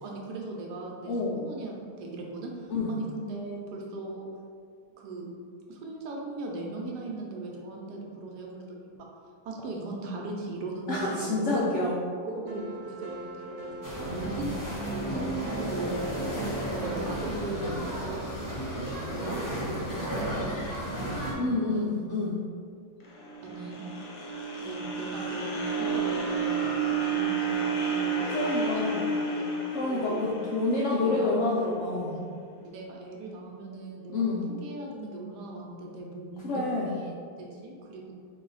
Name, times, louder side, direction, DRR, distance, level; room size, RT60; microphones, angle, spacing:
voice 1, 0.0-4.3 5.0-5.3 5.7-9.1 9.4-11.9 12.2-14.6 14.9-16.0 16.7-18.2 19.1-21.9 23.4-23.8 24.6-30.2 30.9-31.3 31.9-32.3 32.6-37.1 37.4-38.1, right 2 dB, 85° right, -1 dB, 1.3 m, -39 dB
voice 2, 10.9-11.9 21.4-22.4 28.3-29.0 29.7-32.2 34.1-34.5 36.4-37.0, left 2 dB, 75° left, -4 dB, 0.6 m, -28 dB
sound 1, 12.5-18.4, right 2 dB, 65° right, 1.0 m, -41 dB
sound 2, 13.8-21.3, right 1 dB, 25° left, 0.4 m, -33 dB
sound 3, 23.0-31.3, right 4 dB, 60° left, 1.0 m, -31 dB
4.0 x 2.7 x 3.9 m, 2.2 s
omnidirectional pair, 1.7 m